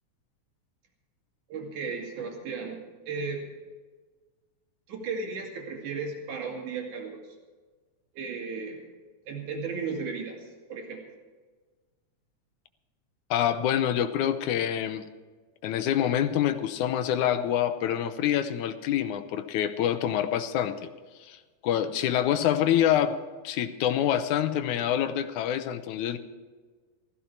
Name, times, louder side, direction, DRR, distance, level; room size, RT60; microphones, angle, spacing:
voice 1, 1.5-2.8 3.1-3.5 4.9-7.2 8.1-8.8 9.3-11.0, right 4 dB, 80° right, 1 dB, 3.9 m, -35 dB
voice 2, 13.3-15.0 15.6-20.8 21.2-21.4 21.6-23.2 23.4-26.2, left 10 dB, 85° left, 10 dB, 2.2 m, -26 dB
15.5 x 14.5 x 4.4 m, 1.4 s
omnidirectional pair, 3.5 m